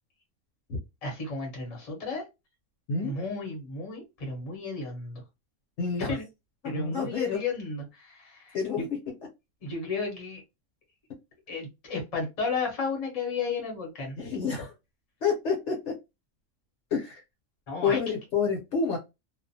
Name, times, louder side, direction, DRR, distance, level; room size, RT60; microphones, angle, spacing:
voice 1, 1.0-2.2 3.0-5.2 6.1-6.2 6.6-8.9 9.6-10.4 11.5-14.1 17.7-18.0, left 4 dB, 30° left, 0 dB, 0.8 m, -33 dB
voice 2, 5.8-6.2 6.6-7.4 8.5-8.9 14.2-14.7 15.2-15.9 16.9-17.2 17.8-19.0, left 5 dB, 60° left, 0 dB, 1.0 m, -28 dB
2.4 x 2.1 x 2.6 m, 0.23 s
omnidirectional pair, 1.5 m